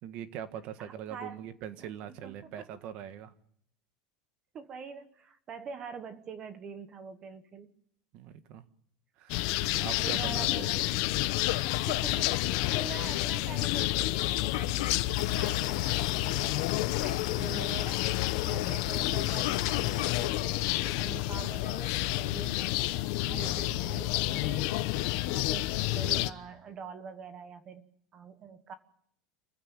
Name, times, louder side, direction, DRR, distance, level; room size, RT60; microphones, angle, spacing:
voice 1, 0.0-3.3 8.1-8.6 9.2-10.7 18.4-18.7 23.2-23.9, right 9 dB, 40° right, 11 dB, 1.6 m, -42 dB
voice 2, 0.8-1.4 1.8-2.6 4.5-7.7 9.9-11.1 11.9-16.7 17.0-18.1 18.5-22.7 23.2-24.9 25.3-28.7, right 6 dB, 25° right, 10 dB, 1.3 m, -45 dB
bird ambiance with motorcycle, 9.3-26.3, left 17 dB, 50° left, 0.9 m, -30 dB
sound 1, 11.3-12.4 14.2-15.5 16.2-16.5 16.8-17.2 19.0-20.6 21.1-21.9, left 16 dB, 90° left, 1.4 m, -38 dB
sound 2, 15.1-20.3, left 16 dB, 70° left, 2.2 m, -37 dB
27.5 x 15.5 x 9.0 m, 0.69 s
supercardioid pair, 175°, 3 cm